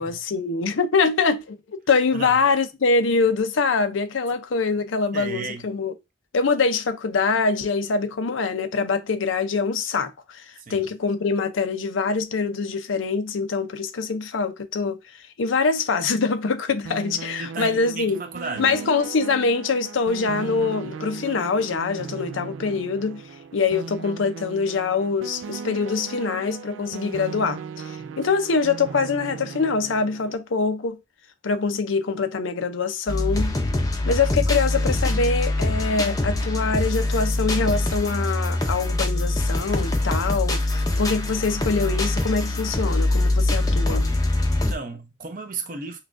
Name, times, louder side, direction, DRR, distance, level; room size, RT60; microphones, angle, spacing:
voice 1, 0.0-5.9 6.3-15.0 15.4-18.2 18.6-23.2 23.5-31.0 31.4-33.6 34.0-44.1, left 4 dB, 90° left, 0.6 m, -24 dB
voice 2, 5.1-5.7 10.6-10.9 17.4-18.8 28.0-28.2 44.5-46.0, right 4 dB, 45° right, 0.7 m, -35 dB
sound 1, 16.8-30.4, right 5 dB, 75° right, 0.3 m, -37 dB
sound 2, 33.1-44.7, left 2 dB, 20° left, 0.5 m, -23 dB
5.6 x 2.3 x 2.5 m
head